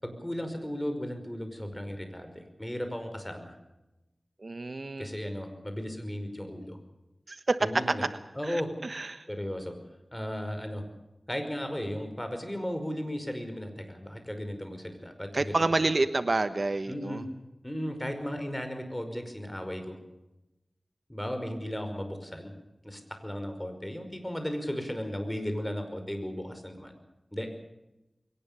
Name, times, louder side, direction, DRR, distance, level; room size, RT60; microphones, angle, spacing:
voice 1, 0.0-3.6 5.0-6.8 7.6-8.0 8.4-8.7 9.3-9.7 10.1-10.9 11.3-15.8 16.9-17.3 17.6-20.0 21.1-22.5 22.8-27.0 27.3-27.5, equal, 15° left, 6 dB, 5.4 m, -35 dB
voice 2, 4.4-5.1 7.3-7.9 8.5-9.3 15.3-17.2, right 2 dB, 60° right, 11 dB, 1.2 m, -28 dB
22.5 x 18.5 x 7.0 m, 0.95 s
wide cardioid pair, 50°, 0 cm